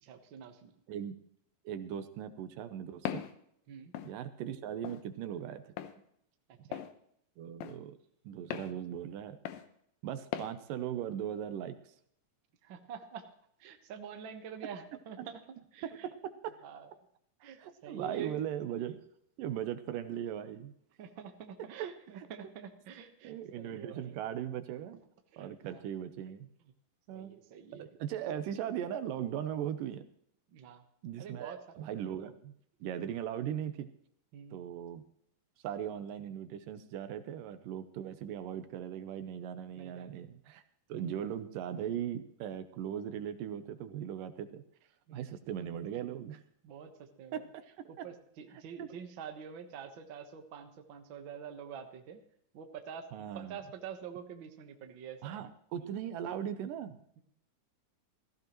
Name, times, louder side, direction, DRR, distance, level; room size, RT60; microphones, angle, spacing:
voice 1, 0.0-0.7 3.7-3.9 6.7-6.8 12.6-13.2 13.6-16.1 16.6-16.9 17.4-18.4 21.0-24.2 25.3-25.8 27.1-27.9 30.5-30.8 31.2-31.9 34.3-34.6 39.7-40.2 45.1-45.3 46.6-47.4 47.9-52.2 52.5-53.1 53.3-55.4, right 7 dB, 60° right, 5 dB, 1.3 m, -46 dB
voice 2, 1.7-3.2 4.0-5.6 7.4-8.0 8.2-9.4 10.0-11.9 15.2-15.3 15.8-16.6 17.6-19.0 19.4-20.7 23.2-25.0 25.4-26.5 27.1-27.3 27.7-30.0 31.0-32.5 32.8-33.9 34.5-35.0 35.6-40.6 40.9-44.6 45.1-46.4 47.3-47.4 47.8-48.1 48.8-48.9 53.1-53.6 55.2-57.0, right 10 dB, 75° right, 10 dB, 2.3 m, -39 dB
Walk footsteps, 3.1-3.3 3.9-4.1 4.8-5.0 5.8-5.9 6.7-6.9 7.6-7.8 8.5-8.7 9.5-9.7 10.3-10.5, left 10 dB, 80° left, 2.6 m, -38 dB
16.0 x 15.0 x 3.1 m, 0.68 s
omnidirectional pair, 4.0 m